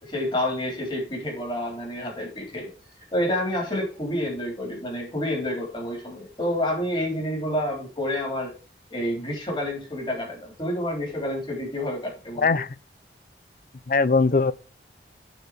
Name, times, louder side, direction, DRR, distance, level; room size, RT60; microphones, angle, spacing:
voice 1, 0.0-2.7 3.1-8.5 8.9-12.6, left 1 dB, 25° left, 3.9 m, -29 dB
voice 2, 12.4-12.7 13.9-14.5, left 4 dB, 50° left, 0.5 m, -20 dB
9.2 x 4.8 x 5.0 m
head